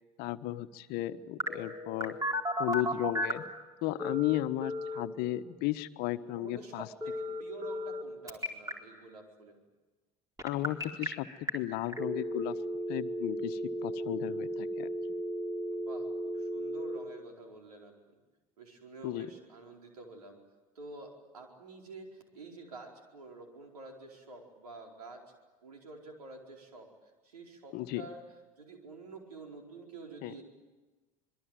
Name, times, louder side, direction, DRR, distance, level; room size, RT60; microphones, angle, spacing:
voice 1, 0.2-2.2 2.6-3.4 3.8-6.9 10.4-12.6 12.9-14.9 19.0-19.3 27.7-28.0 30.2-30.3, left 15 dB, 55° left, 12 dB, 1.2 m, -34 dB
Telephone, 1.4-3.5 4.0-5.0 7.0-8.0 8.3-8.7 10.4-11.1 11.5-11.6 11.9-17.0, equal, 15° right, 4.3 m, -34 dB
voice 2, 6.3-9.6 15.7-18.2 18.6-20.4 20.7-25.2 25.6-28.3 28.6-30.4, right 3 dB, 80° right, 2 dB, 4.7 m, -49 dB
26.0 x 22.5 x 9.1 m, 1.2 s
hypercardioid pair, 70°, 19 cm